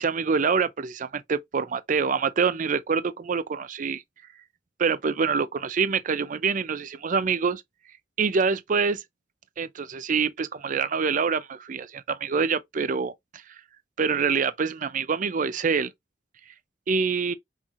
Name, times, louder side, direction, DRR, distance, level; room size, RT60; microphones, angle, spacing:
voice 1, 0.0-4.0 4.8-7.6 8.2-9.0 9.6-13.4 14.0-15.9 16.9-17.3, right 5 dB, 45° right, 0.5 m, -26 dB
5.5 x 3.0 x 2.4 m
head